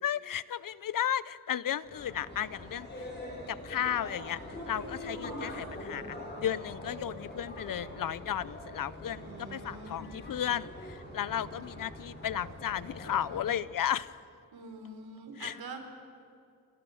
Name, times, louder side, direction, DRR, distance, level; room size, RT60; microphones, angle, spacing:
voice 1, 0.0-3.1 3.5-14.2 15.4-15.6, left 10 dB, 65° left, 18 dB, 0.7 m, -34 dB
sound 1, 1.8-13.6, left 1 dB, 30° left, 6.6 m, -43 dB
voice 2, 9.2-10.1 14.5-15.8, right 3 dB, 85° right, 5 dB, 3.9 m, -45 dB
29.5 x 26.0 x 6.4 m, 2.5 s
wide cardioid pair, 180°, 35 cm